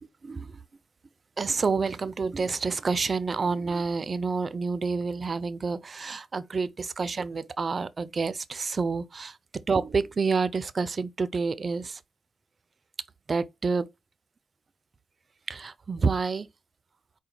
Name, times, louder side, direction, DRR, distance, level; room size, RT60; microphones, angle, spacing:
voice 1, 0.0-0.6 1.4-12.0 13.3-13.9 15.5-16.5, right 4 dB, 50° right, 0.4 m, -28 dB
4.9 x 2.1 x 4.3 m
supercardioid pair, 45°, 0 cm